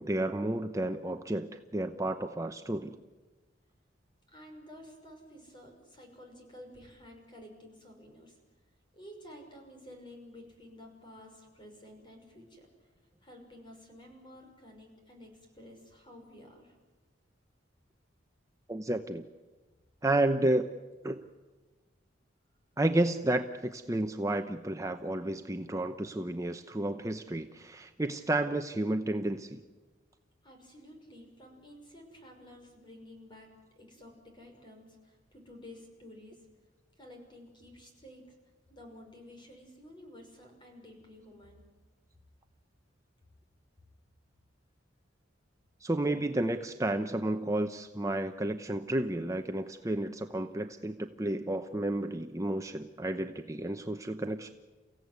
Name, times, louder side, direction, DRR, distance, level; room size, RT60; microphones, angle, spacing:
voice 1, 0.0-3.0 18.7-19.2 20.0-20.7 21.0-21.2 22.8-29.6 45.8-54.5, right 1 dB, 15° right, 6 dB, 0.8 m, -31 dB
voice 2, 4.3-8.4 8.9-12.7 13.2-16.7 30.4-33.5 33.8-36.4 37.0-38.3 38.7-41.6, left 1 dB, 25° left, 3 dB, 5.9 m, -52 dB
30.0 x 16.0 x 9.6 m, 1.3 s
head